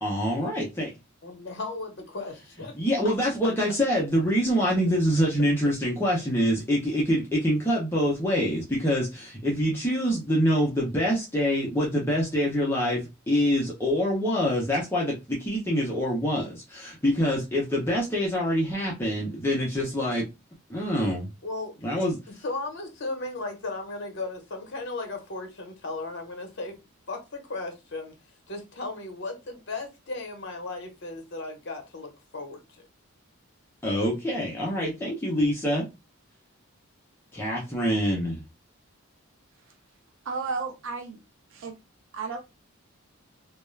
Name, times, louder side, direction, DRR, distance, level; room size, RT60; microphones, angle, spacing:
voice 1, 0.0-0.9 2.8-20.3 20.7-21.3 21.8-22.2 33.8-35.8 37.3-38.4, equal, 10° left, 0.5 m, -25 dB
voice 2, 1.2-2.8 21.4-22.1 22.4-26.8 27.1-28.1 28.5-32.9, left 3 dB, 55° left, 0.7 m, -36 dB
voice 3, 40.2-41.2 41.5-41.7 42.1-42.4, right 4 dB, 60° right, 0.4 m, -33 dB
2.3 x 2.1 x 3.1 m
head